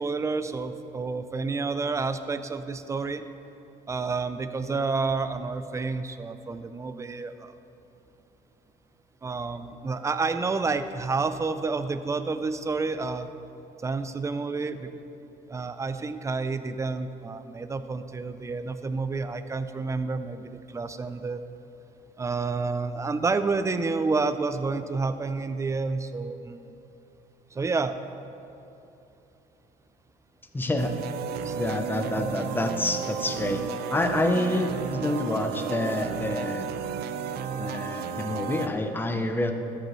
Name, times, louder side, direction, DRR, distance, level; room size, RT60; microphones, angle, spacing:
voice 1, 0.0-3.2 3.9-7.5 9.2-13.3 13.8-15.0 15.5-21.4 22.2-26.7 27.5-28.0 31.4-31.6, right 4 dB, 15° right, 11 dB, 0.4 m, -29 dB
voice 2, 30.5-30.9 31.6-33.6 33.9-36.7 37.6-39.5, left 1 dB, 10° left, 6 dB, 0.7 m, -27 dB
sound 1, 30.8-38.7, right 6 dB, 70° right, 0.5 m, -33 dB
13.5 x 8.1 x 3.1 m, 2.8 s
cardioid pair, 110°, 17 cm